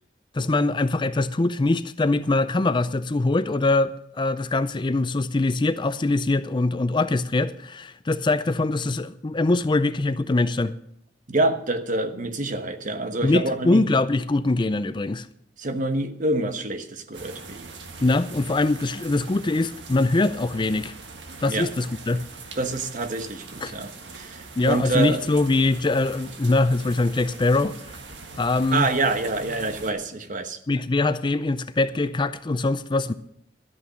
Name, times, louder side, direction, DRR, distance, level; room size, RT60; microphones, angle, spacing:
voice 1, 0.3-10.7 13.2-15.3 18.0-20.9 21.4-22.2 23.6-23.7 24.6-27.7 28.4-28.9 30.7-33.1, left 2 dB, 25° left, 13 dB, 0.5 m, -23 dB
voice 2, 11.3-13.8 15.6-17.7 21.5-21.7 22.6-23.9 24.2-25.2 28.7-30.6, right 2 dB, 45° right, 8 dB, 1.1 m, -26 dB
sound 1, 17.1-29.9, right 3 dB, 75° right, 1.6 m, -42 dB
12.5 x 8.6 x 6.2 m, 0.71 s
head